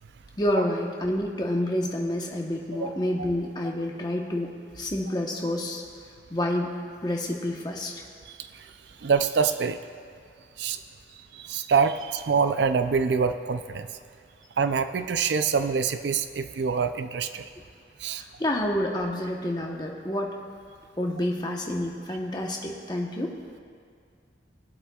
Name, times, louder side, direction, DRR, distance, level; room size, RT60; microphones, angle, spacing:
voice 1, 0.4-5.8 6.3-6.7 7.0-8.0 18.2-20.4 21.0-23.3, left 1 dB, 20° left, 0 dB, 1.0 m, -28 dB
voice 2, 9.0-9.8 10.6-10.8 11.3-13.9 14.6-17.5 18.0-18.2, right 5 dB, 70° right, 10 dB, 0.4 m, -25 dB
22.0 x 8.1 x 2.3 m, 2.3 s
head